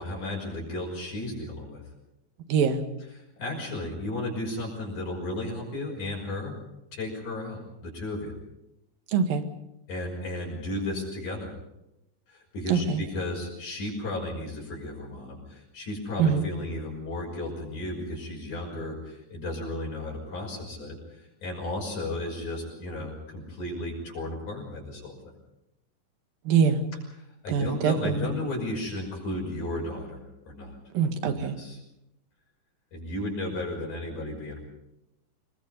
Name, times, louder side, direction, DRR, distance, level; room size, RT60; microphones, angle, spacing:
voice 1, 0.0-1.8 3.1-6.5 6.9-8.3 9.9-11.5 12.3-25.3 27.2-30.8 31.2-31.8 32.9-34.6, left 1 dB, 60° left, -2 dB, 7.3 m, -34 dB
voice 2, 2.5-2.8 9.1-9.4 12.7-13.0 16.2-16.4 26.5-26.8 27.5-28.3 30.9-31.6, right 6 dB, 80° right, 8 dB, 3.5 m, -23 dB
26.5 x 22.0 x 5.4 m, 0.87 s
omnidirectional pair, 4.0 m